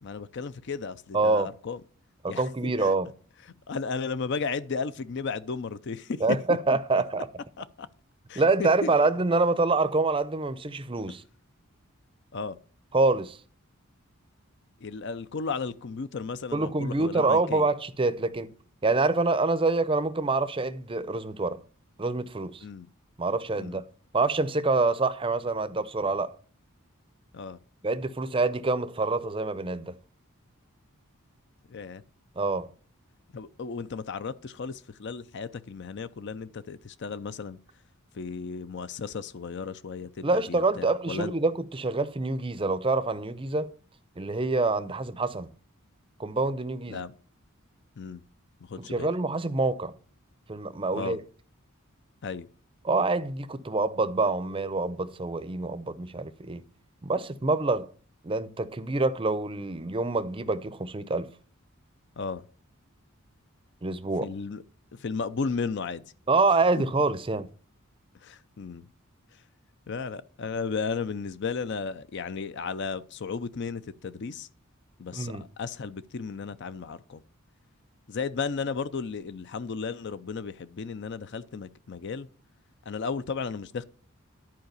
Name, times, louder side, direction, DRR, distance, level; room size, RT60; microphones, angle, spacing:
voice 1, 0.0-1.8 2.3-2.9 3.7-6.6 7.6-7.9 8.3-8.9 12.3-12.6 14.8-17.7 22.6-22.9 23.6-23.8 27.3-27.6 31.7-32.0 33.3-37.6 38.1-41.3 46.9-47.1 48.0-48.2 48.6-49.1 50.9-51.2 52.2-52.5 62.2-62.4 64.2-64.6 64.9-66.0 68.2-68.9 69.9-74.5 75.0-77.2 78.1-82.3 82.9-83.8, left 5 dB, 55° left, 0.5 m, -34 dB
voice 2, 1.1-1.5 2.2-3.1 6.2-7.3 8.4-11.2 12.9-13.4 16.5-18.5 18.8-21.6 22.0-22.6 23.2-23.8 24.1-26.3 27.8-29.9 32.4-32.7 40.2-43.7 44.2-45.5 46.2-47.0 48.8-49.9 50.5-51.2 52.8-56.6 57.0-57.9 58.2-61.3 63.8-64.3 66.3-67.5 75.1-75.4, right 3 dB, 25° right, 0.6 m, -26 dB
10.5 x 4.8 x 6.8 m
head